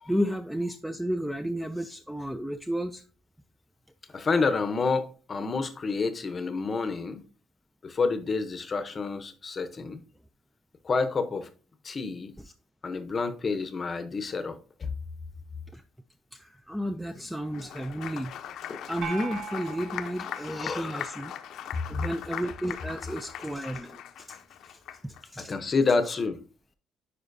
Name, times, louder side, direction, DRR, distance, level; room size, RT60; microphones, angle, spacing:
voice 1, 0.0-3.0 12.4-12.5 15.7-15.8 16.3-18.3 18.9-21.3 21.9-24.4 25.0-25.5, equal, ahead, 0.3 m, -32 dB
voice 2, 4.1-7.2 7.8-10.0 10.8-11.5 11.8-12.3 12.8-14.9 18.7-18.8 20.5-21.2 25.5-26.4, left 4 dB, 25° left, 0.7 m, -29 dB
Applause, 17.4-25.2, left 10 dB, 60° left, 0.6 m, -40 dB
sound 1, 19.0-21.5, right 6 dB, 75° right, 2.1 m, -41 dB
9.6 x 4.9 x 2.6 m
cardioid pair, 170°, 0 cm